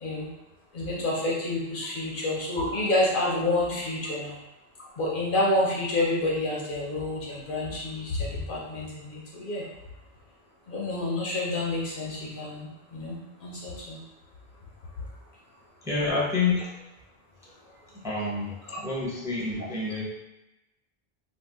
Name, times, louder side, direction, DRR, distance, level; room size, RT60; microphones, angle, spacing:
voice 1, 0.7-4.3 5.0-9.6 10.7-14.0 18.7-18.8, left 2 dB, 60° left, -4 dB, 0.8 m, -28 dB
voice 2, 15.8-16.6 17.9-18.5 18.8-20.0, left 4 dB, 5° right, -7 dB, 0.7 m, -28 dB
2.7 x 2.2 x 3.4 m, 0.96 s
omnidirectional pair, 1.0 m